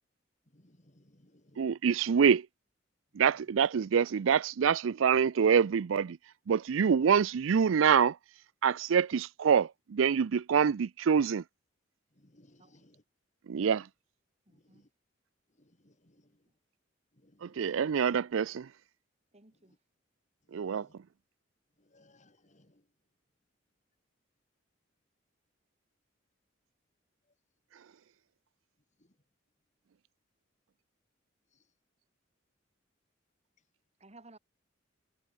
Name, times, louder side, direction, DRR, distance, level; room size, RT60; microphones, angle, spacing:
voice 1, 0.5-1.7 12.2-13.0 13.5-13.7 14.5-14.9 15.6-16.4 17.1-17.8 19.7-19.8 20.6-21.0 21.8-22.8 29.0-29.1, left 1 dB, 40° left, 3.4 m, -64 dB
voice 2, 1.6-2.5 3.1-6.2 6.5-8.2 8.6-11.4 13.5-13.9 17.4-18.7 20.5-20.9, right 7 dB, 90° right, 0.4 m, -26 dB
voice 3, 14.5-14.8 19.3-19.8 34.0-34.4, right 2 dB, 35° right, 3.1 m, -56 dB
head